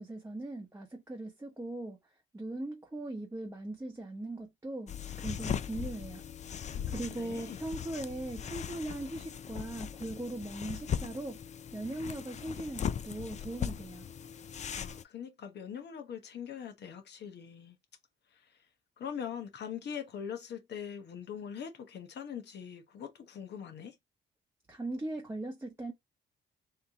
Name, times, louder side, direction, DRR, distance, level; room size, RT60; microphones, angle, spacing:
voice 1, 0.0-2.0 2.3-6.2 6.9-11.4 11.7-14.1 24.7-25.9, right 2 dB, 15° right, 1.0 m, -39 dB
sound 1, 4.9-15.0, left 8 dB, 35° left, 0.4 m, -39 dB
voice 2, 6.9-7.6 14.7-17.8 18.3-18.6 19.0-24.0, left 8 dB, 60° left, 1.1 m, -42 dB
3.5 x 2.8 x 3.6 m
cardioid pair, 90°, 20 cm